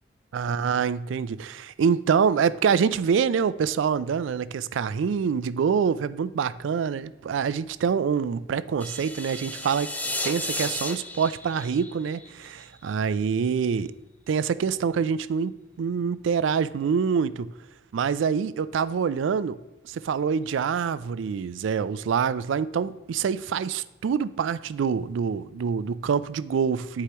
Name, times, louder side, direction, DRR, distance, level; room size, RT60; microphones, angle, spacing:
voice 1, 0.3-9.9 10.2-13.9 14.3-17.5 17.9-19.6 19.8-27.0, right 6 dB, 75° right, 0.3 m, -26 dB
sound 1, 8.8-12.9, left 2 dB, 10° left, 0.4 m, -33 dB
11.0 x 4.8 x 2.9 m
head